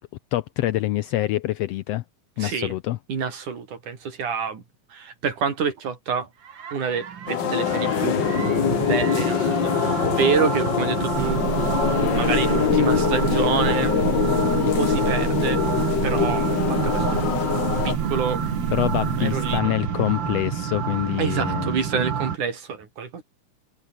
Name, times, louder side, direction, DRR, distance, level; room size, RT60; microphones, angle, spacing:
voice 1, 0.3-2.0 2.4-3.0 18.7-22.0, left 15 dB, 75° left, 1.5 m, -26 dB
voice 2, 2.4-2.7 3.1-4.6 4.9-6.3 6.7-8.2 8.7-11.4 12.0-15.6 16.0-17.2 17.9-18.4 19.2-19.8 21.2-23.2, right 6 dB, 85° right, 5.2 m, -27 dB
sound 1, 6.4-22.4, right 7 dB, 45° right, 2.1 m, -29 dB
sound 2, 7.3-18.0, left 10 dB, 60° left, 1.2 m, -24 dB
sound 3, 11.1-19.6, right 8 dB, 60° right, 3.3 m, -28 dB
omnidirectional pair, 3.5 m